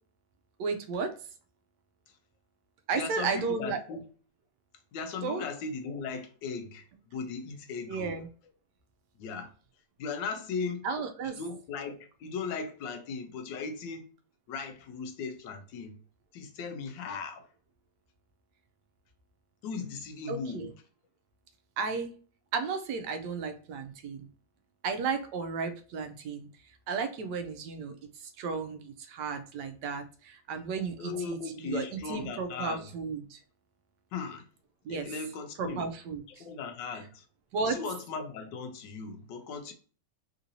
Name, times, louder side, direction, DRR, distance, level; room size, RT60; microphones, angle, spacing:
voice 1, 0.6-1.1 2.9-3.8 5.2-5.4 7.9-8.3 10.8-11.4 20.3-20.7 21.8-22.1 22.5-24.3 24.8-26.5 26.9-28.0 28.2-33.4 34.8-35.1 35.6-36.2 37.5-37.8, right 5 dB, 75° right, 1.2 m, -33 dB
voice 2, 2.9-4.0 4.9-6.8 7.1-8.1 9.2-9.5 10.0-10.9 11.2-14.0 14.5-16.0 16.3-17.5 19.6-20.7 31.0-32.9 34.1-34.4 34.9-35.9 36.3-37.3 37.6-39.7, left 5 dB, 90° left, 1.3 m, -37 dB
3.7 x 2.6 x 2.7 m
omnidirectional pair, 1.9 m